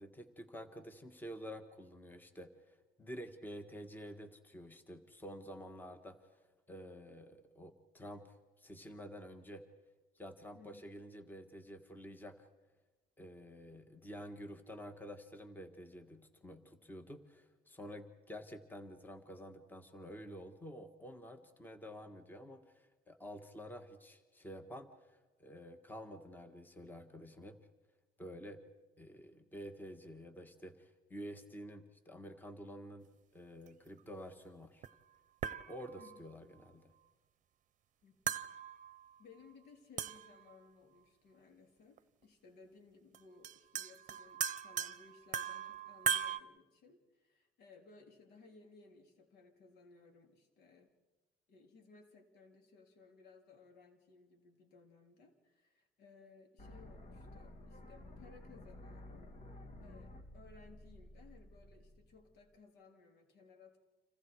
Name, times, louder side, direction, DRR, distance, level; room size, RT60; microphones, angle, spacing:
voice 1, 0.0-9.6 10.1-12.5 13.2-27.6 28.2-28.6 29.0-33.1 33.3-34.8 35.7-36.9, equal, 10° left, 7 dB, 1.7 m, -50 dB
voice 2, 10.5-10.9 36.0-36.3 38.0-38.4 39.2-50.9 51.5-63.8, left 4 dB, 75° left, 4 dB, 3.6 m, -61 dB
sound 1, 34.8-34.9 35.4-36.2 38.3-39.1 40.0-40.5 42.0-42.1 43.1-43.2 43.4-46.4, right 7 dB, 50° right, 0.8 m, -38 dB
sound 2, 56.6-62.6, left 1 dB, 45° left, 3.2 m, -53 dB
30.0 x 27.0 x 4.8 m, 1.2 s
cardioid pair, 110°, 17 cm